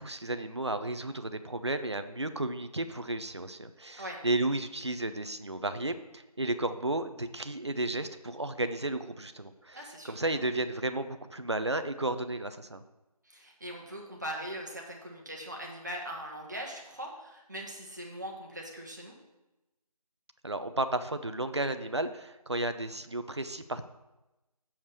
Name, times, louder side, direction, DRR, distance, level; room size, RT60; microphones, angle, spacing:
voice 1, 0.0-12.8 20.4-23.8, right 2 dB, 45° right, 10 dB, 0.6 m, -33 dB
voice 2, 9.7-10.4 13.2-19.2, equal, 30° right, -1 dB, 1.3 m, -41 dB
7.2 x 4.8 x 6.9 m, 1.0 s
figure-of-eight pair, 170°, 20 cm